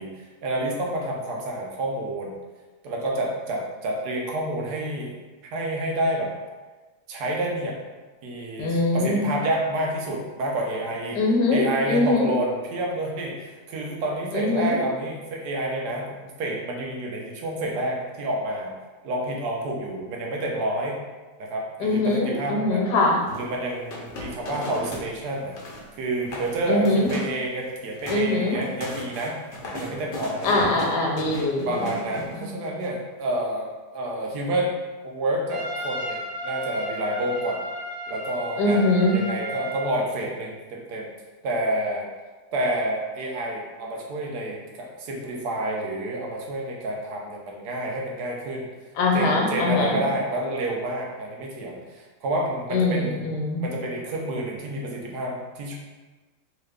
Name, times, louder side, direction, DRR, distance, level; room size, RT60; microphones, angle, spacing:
voice 1, 0.0-2.3 2.8-5.1 5.5-6.3 7.1-7.8 8.2-11.2 11.5-18.7 19.0-21.0 21.4-22.9 23.4-29.3 29.7-30.5 31.7-34.7 35.0-37.6 38.1-41.1 41.4-42.1 42.5-48.7 49.1-53.3 53.6-55.7, right 1 dB, 85° right, -1 dB, 1.2 m, -29 dB
voice 2, 8.6-9.2 11.1-12.3 14.3-14.8 21.8-23.2 26.7-27.1 28.1-28.6 30.4-31.9 32.2-32.3 38.6-39.2 49.0-50.0 52.7-53.6, left 2 dB, 90° left, -1 dB, 1.3 m, -22 dB
sound 1, 23.2-25.1 25.4-25.9 26.2-26.5 26.8-27.4 27.7-32.5, left 1 dB, 65° left, 0.5 m, -37 dB
Trumpet, 35.5-39.9, equal, 65° right, 0.4 m, -34 dB
3.2 x 2.4 x 3.3 m, 1.3 s
omnidirectional pair, 1.7 m